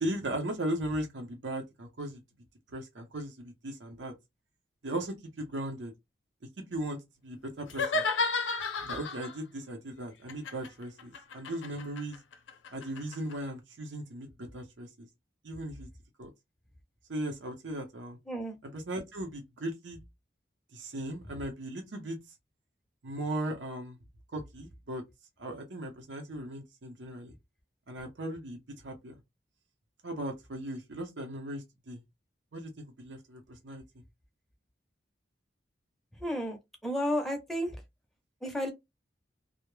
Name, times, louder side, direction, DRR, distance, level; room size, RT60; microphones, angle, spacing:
voice 1, 0.0-2.2 2.7-4.1 4.8-5.9 6.7-7.0 7.2-8.1 8.8-12.2 12.7-15.1 15.4-15.9 16.2-16.3 17.1-18.2 18.6-20.0 20.7-22.2 23.0-24.0 24.3-25.0 25.4-27.3 27.9-29.2 30.0-32.0 32.5-33.8, right 1 dB, 80° right, 0.7 m, -37 dB
sound 1, 7.7-9.4 10.3-13.3, left 3 dB, 90° left, 0.5 m, -32 dB
voice 2, 18.3-18.6 36.2-36.6 36.8-37.7 38.4-38.7, equal, ahead, 0.5 m, -31 dB
2.2 x 2.0 x 3.1 m
head